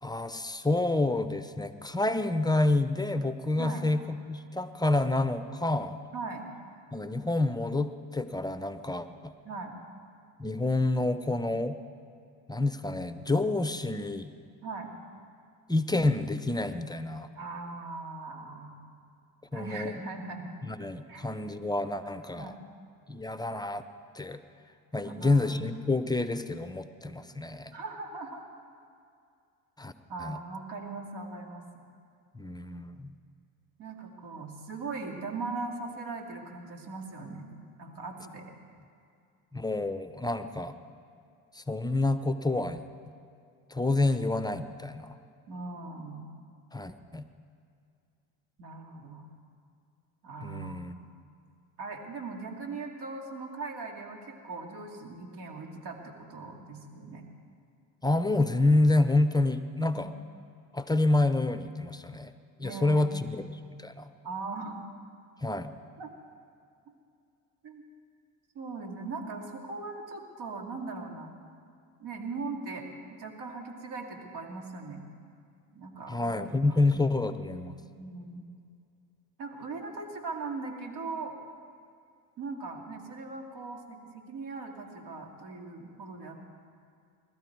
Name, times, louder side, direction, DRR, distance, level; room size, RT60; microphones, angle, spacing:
voice 1, 0.0-6.0 6.9-9.3 10.4-11.8 12.5-14.3 15.7-17.3 19.5-20.0 20.6-22.5 23.1-23.8 24.1-24.4 24.9-27.7 29.8-29.9 30.2-30.4 32.3-33.2 39.5-40.8 41.5-42.8 43.7-45.2 46.7-47.3 50.4-51.1 58.0-60.1 60.7-62.3 62.6-64.1 65.4-65.7 76.1-77.8, left 2 dB, 10° left, 11 dB, 0.6 m, -28 dB
voice 2, 6.1-6.4 9.4-9.7 14.6-14.9 17.4-18.7 19.5-20.5 21.1-21.5 22.4-22.7 25.0-25.5 27.7-28.4 30.1-31.6 33.8-37.4 37.8-38.4 45.5-46.4 48.6-49.3 50.2-50.8 51.8-57.2 59.9-60.0 62.6-63.4 64.2-64.8 66.0-66.1 67.6-67.8 68.5-71.3 72.0-72.8 73.1-75.0 75.7-76.8 78.0-78.4 79.4-81.3 82.4-86.5, right 3 dB, 60° right, 2 dB, 2.7 m, -39 dB
21.0 x 12.5 x 4.7 m, 2.4 s
supercardioid pair, 80°, 44 cm